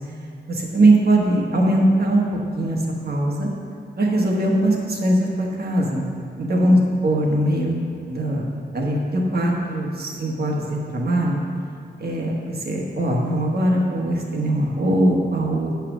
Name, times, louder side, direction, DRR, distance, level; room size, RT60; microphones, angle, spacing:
voice 1, 0.5-2.8 3.0-3.5 4.0-6.0 6.4-7.8 8.1-8.5 8.7-11.4 12.0-15.7, right 1 dB, 60° right, -1 dB, 1.4 m, -21 dB
8.9 x 5.8 x 6.1 m, 2.4 s
wide cardioid pair, 160°, 18 cm